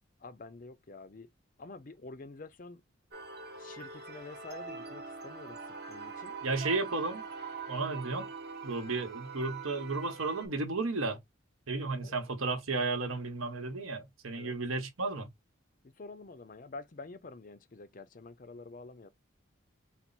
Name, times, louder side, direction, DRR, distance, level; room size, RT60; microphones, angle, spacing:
voice 1, 0.2-1.3 1.6-2.8 3.6-6.4 12.0-12.1 14.3-14.5 15.8-19.1, left 3 dB, 40° left, 0.5 m, -48 dB
sound 1, 3.1-10.5, right 4 dB, 50° right, 1.1 m, -43 dB
voice 2, 6.4-7.2 7.7-8.3 8.6-11.2 11.7-15.3, right 3 dB, 80° right, 1.1 m, -33 dB
4.4 x 2.0 x 3.9 m
head